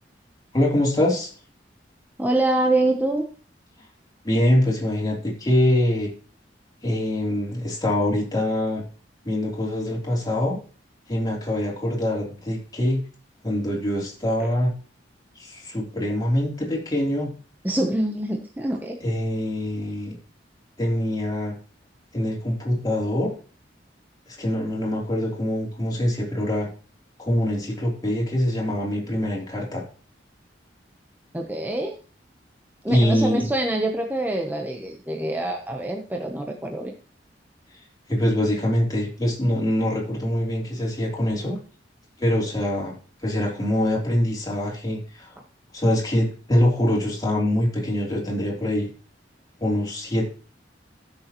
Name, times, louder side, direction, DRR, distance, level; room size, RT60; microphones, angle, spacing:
voice 1, 0.5-1.3 4.2-6.1 6.8-8.8 9.2-10.6 11.1-13.0 13.4-14.7 15.3-17.3 19.0-20.1 20.8-21.5 22.1-23.3 24.3-26.7 27.2-29.8 32.9-33.5 38.1-41.5 42.2-42.9 43.2-45.4 45.7-48.9 49.6-50.3, left 1 dB, 20° left, -3 dB, 3.4 m, -24 dB
voice 2, 2.2-3.3 14.4-14.5 17.6-19.0 31.3-32.0 32.8-36.9, right 1 dB, 10° right, 2 dB, 0.9 m, -25 dB
15.0 x 6.8 x 3.0 m, 0.39 s
head